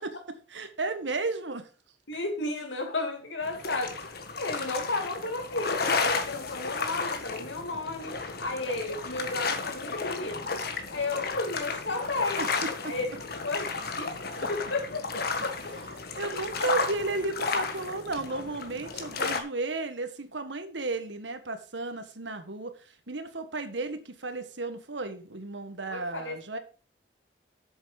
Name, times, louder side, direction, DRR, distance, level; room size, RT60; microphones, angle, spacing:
voice 1, 0.0-1.7 12.4-13.0 14.4-14.5 16.2-26.6, right 3 dB, 80° right, 1.6 m, -34 dB
voice 2, 2.1-10.6 10.9-12.4 12.9-13.1 13.4-14.2 14.5-16.0 25.9-26.4, left 2 dB, 90° left, 2.8 m, -33 dB
sound 1, 3.4-19.4, left 4 dB, 55° left, 1.5 m, -33 dB
8.3 x 7.3 x 5.2 m
head